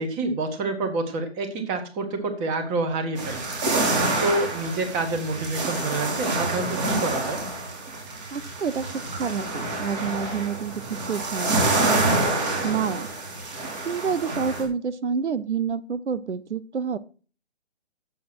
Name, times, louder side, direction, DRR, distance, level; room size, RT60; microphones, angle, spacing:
voice 1, 0.0-3.4 4.2-7.4, right 2 dB, 15° right, 6 dB, 1.3 m, -27 dB
wave rocks canada creek processed, 3.2-14.6, right 2 dB, 40° right, 4.5 m, -27 dB
voice 2, 8.3-8.9 9.2-10.8 11.1-12.2 12.6-13.1 13.8-17.0, right 6 dB, 85° right, 16 dB, 1.0 m, -28 dB
9.1 x 7.7 x 6.0 m, 0.37 s
hypercardioid pair, 160°, 34 cm